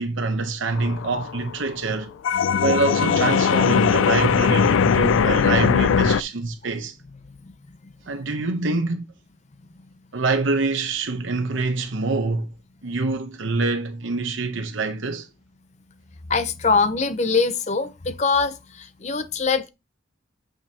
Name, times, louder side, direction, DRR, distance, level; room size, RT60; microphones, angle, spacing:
voice 1, 0.0-6.9 8.1-9.0 10.1-12.5 12.8-15.3, right 3 dB, 80° right, 0.8 m, -25 dB
sound 1, 0.8-6.2, left 7 dB, 85° left, 0.3 m, -20 dB
voice 2, 16.3-19.7, left 4 dB, 35° left, 0.6 m, -23 dB
8.8 x 5.1 x 2.8 m
head